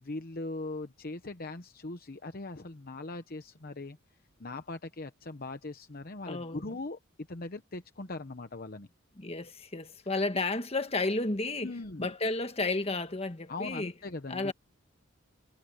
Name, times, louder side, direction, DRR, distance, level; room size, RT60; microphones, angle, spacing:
voice 1, 0.0-4.0 4.4-7.0 7.3-8.9 11.6-12.1 13.5-14.5, left 2 dB, 45° left, 0.9 m, -40 dB
voice 2, 6.3-6.8 9.2-11.7 12.0-13.9 14.3-14.5, left 2 dB, 30° left, 1.5 m, -32 dB
head